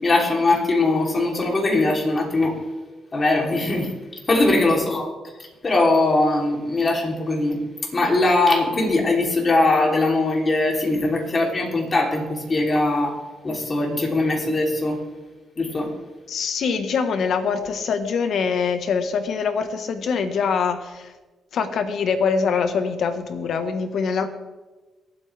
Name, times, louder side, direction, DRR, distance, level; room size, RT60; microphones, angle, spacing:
voice 1, 0.0-2.6 3.1-3.9 4.3-5.1 5.6-7.6 7.9-15.0 15.6-15.9, left 2 dB, 35° left, -1 dB, 3.3 m, -21 dB
voice 2, 16.3-21.1 21.5-24.3, left 5 dB, 70° left, 8 dB, 1.4 m, -24 dB
25.0 x 8.6 x 3.4 m, 1.2 s
cardioid pair, 85°, 0 cm